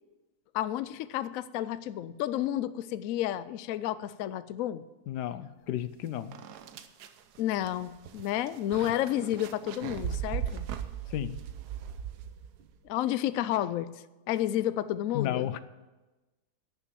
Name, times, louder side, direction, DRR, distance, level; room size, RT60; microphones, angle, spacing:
voice 1, 0.5-4.8 7.4-10.7 12.8-13.9 14.3-15.5, left 12 dB, 70° left, 15 dB, 0.9 m, -31 dB
voice 2, 5.1-6.4 11.1-11.4 15.1-15.6, left 12 dB, 85° left, 14 dB, 1.3 m, -33 dB
sound 1, 5.8-5.9 6.3-12.7, right 9 dB, 80° right, 1.3 m, -38 dB
11.5 x 7.2 x 8.6 m, 1.1 s
omnidirectional pair, 1.7 m